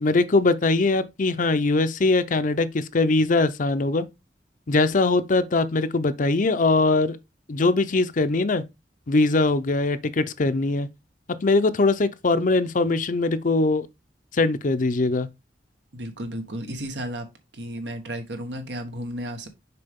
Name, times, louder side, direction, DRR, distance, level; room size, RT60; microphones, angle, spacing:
voice 1, 0.0-4.1 4.7-7.2 7.5-8.6 9.1-10.9 11.4-13.9 14.4-15.3, left 3 dB, 50° left, 0.6 m, -21 dB
voice 2, 15.9-17.3 17.5-19.5, equal, 80° right, 1.4 m, -33 dB
6.8 x 4.8 x 3.6 m
head